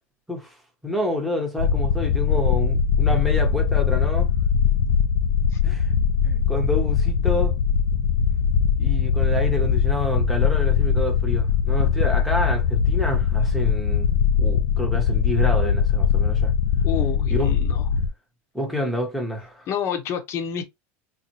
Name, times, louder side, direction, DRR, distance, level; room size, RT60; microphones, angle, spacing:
voice 1, 0.8-4.3 5.6-7.5 8.8-14.1 14.4-16.5 17.3-17.6 18.5-19.7, left 1 dB, ahead, 1.0 m, -28 dB
sound 1, 1.6-18.1, left 7 dB, 80° left, 0.4 m, -21 dB
voice 2, 16.8-17.8 19.7-20.6, left 8 dB, 40° left, 0.8 m, -29 dB
4.1 x 2.1 x 2.8 m
supercardioid pair, 140°, 7 cm